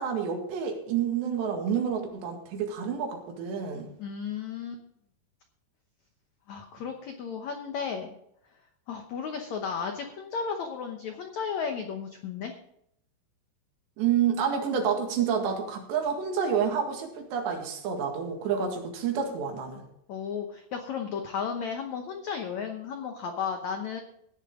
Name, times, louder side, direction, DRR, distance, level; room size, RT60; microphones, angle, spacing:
voice 1, 0.0-3.9 14.0-19.8, right 7 dB, 90° right, 3 dB, 4.2 m, -29 dB
voice 2, 4.0-4.8 6.5-8.1 8.9-12.6 20.1-24.0, left 6 dB, 90° left, 5 dB, 1.6 m, -34 dB
16.5 x 10.5 x 3.7 m, 0.75 s
omnidirectional pair, 4.9 m